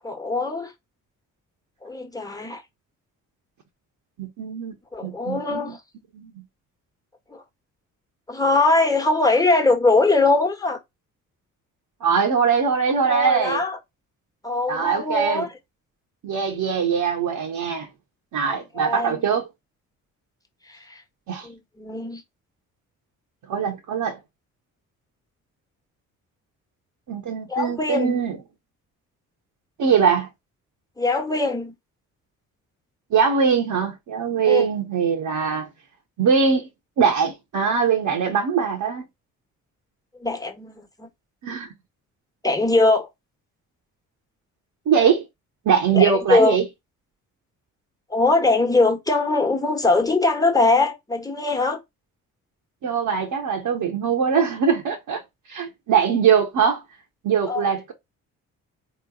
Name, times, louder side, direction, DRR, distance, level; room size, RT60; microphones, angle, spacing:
voice 1, 0.0-0.7 1.8-2.6 4.9-5.8 7.3-7.4 8.3-10.8 13.0-13.8 14.4-15.5 18.5-19.3 20.7-21.0 21.4-22.2 27.5-28.2 31.0-31.7 34.4-34.7 40.2-41.1 42.4-43.1 45.9-46.6 48.1-51.8 57.5-57.7, left 3 dB, 10° left, 1.6 m, -21 dB
voice 2, 4.2-4.7 5.0-5.8 6.1-6.3 12.0-13.6 14.7-15.5 16.2-17.9 18.3-19.4 21.3-21.5 23.5-24.2 27.1-28.4 29.8-30.3 33.1-35.7 36.2-36.7 37.0-39.1 41.4-41.7 44.9-45.2 45.6-46.6 52.8-55.2 55.5-56.8 57.2-57.9, right 6 dB, 50° right, 1.3 m, -21 dB
4.1 x 3.2 x 3.9 m
figure-of-eight pair, 40°, 42 cm